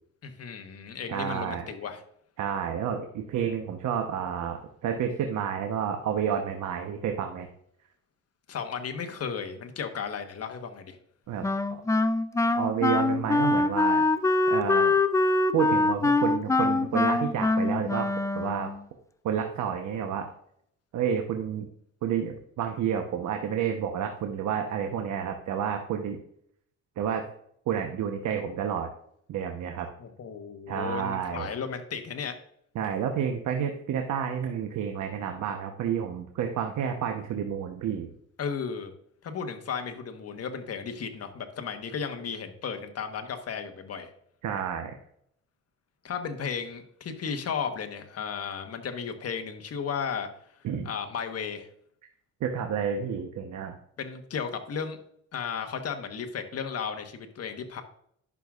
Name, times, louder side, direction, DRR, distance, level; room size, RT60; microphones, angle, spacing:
voice 1, 0.2-2.0 8.5-11.0 30.0-32.3 38.4-38.9 39.2-44.1 46.0-50.3 50.8-51.7 54.0-55.0 55.3-57.8, left 6 dB, 55° left, 6 dB, 1.2 m, -34 dB
voice 2, 1.1-1.7 2.4-7.5 11.3-11.8 12.5-14.1 14.5-14.9 15.5-18.1 18.3-18.7 19.2-20.3 20.9-21.7 22.0-26.2 27.0-27.2 27.7-28.9 29.3-29.9 30.7-31.5 32.7-38.1 44.4-45.0 50.6-50.9 52.4-53.7, right 8 dB, 75° right, 4 dB, 1.0 m, -30 dB
Wind instrument woodwind instrument, 11.4-18.8, left 2 dB, 10° left, 0.4 m, -24 dB
11.0 x 6.2 x 2.4 m, 0.69 s
cardioid pair, 90°, 30 cm